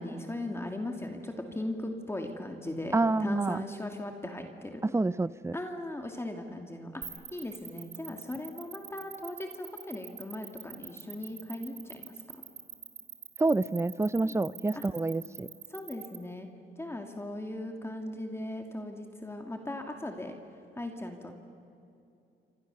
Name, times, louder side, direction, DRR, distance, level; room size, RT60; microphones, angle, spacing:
voice 1, 0.0-4.8 5.5-7.0 7.3-12.1 14.2-14.8 15.7-16.5 16.8-20.4 20.8-21.3, left 1 dB, 10° left, 3 dB, 2.2 m, -38 dB
voice 2, 2.9-3.6 4.8-5.6 13.4-15.5, right 2 dB, 15° right, 19 dB, 0.5 m, -28 dB
sound 1, 7.0-16.2, right 7 dB, 50° right, 2.8 m, -44 dB
27.5 x 26.0 x 6.9 m, 2.6 s
cardioid pair, 90°, 20 cm